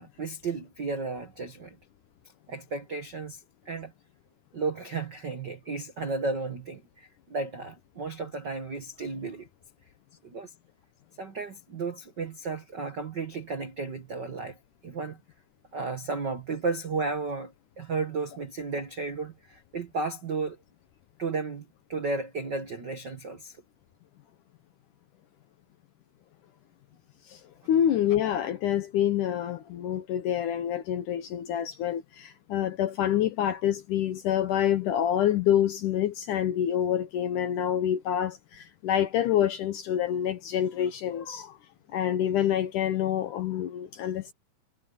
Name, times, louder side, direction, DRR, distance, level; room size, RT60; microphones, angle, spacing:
voice 1, 0.0-1.8 2.5-3.9 4.5-9.5 10.2-10.5 11.2-14.6 14.8-15.2 15.7-20.6 21.2-23.6, right 4 dB, 90° right, 0.9 m, -33 dB
voice 2, 27.7-41.6 41.9-44.3, left 10 dB, 75° left, 2.0 m, -27 dB
omnidirectional pair, 4.7 m